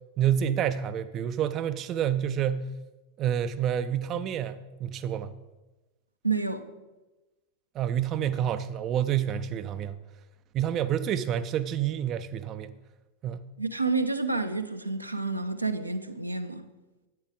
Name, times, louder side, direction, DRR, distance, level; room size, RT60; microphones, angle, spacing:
voice 1, 0.2-2.7 3.2-5.3 7.7-10.0 10.5-12.7 13.2-13.4, right 9 dB, 35° right, 0.4 m, -28 dB
voice 2, 6.2-6.7 13.6-16.6, right 3 dB, 85° right, 0.6 m, -29 dB
10.5 x 8.9 x 3.6 m
figure-of-eight pair, 90°, 0 cm